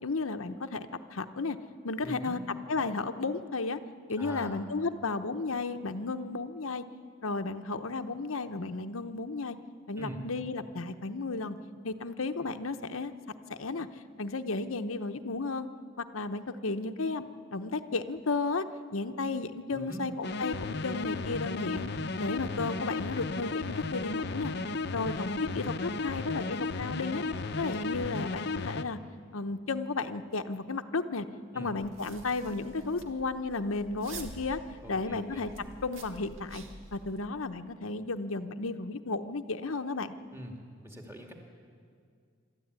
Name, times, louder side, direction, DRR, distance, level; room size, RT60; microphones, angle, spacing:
voice 1, 0.0-1.6 1.8-2.4 2.7-3.8 4.1-6.8 7.2-9.6 9.9-11.6 11.8-13.1 13.5-13.9 14.2-15.7 16.0-17.2 17.5-18.6 18.9-21.9 22.2-24.5 24.9-27.2 27.5-29.0 29.3-31.2 31.5-34.6 34.9-35.5 35.8-36.6 36.9-40.1, left 3 dB, 85° left, 8 dB, 0.9 m, -33 dB
voice 2, 2.0-2.4 4.2-4.6 10.0-10.2 19.7-20.0 31.5-31.7 34.8-35.5 40.3-41.3, equal, 10° right, 1 dB, 2.4 m, -42 dB
sound 1, 20.2-28.8, left 3 dB, 50° left, 0.8 m, -34 dB
sound 2, 31.8-37.2, right 2 dB, 75° right, 2.1 m, -48 dB
26.0 x 13.0 x 9.5 m, 2.2 s
head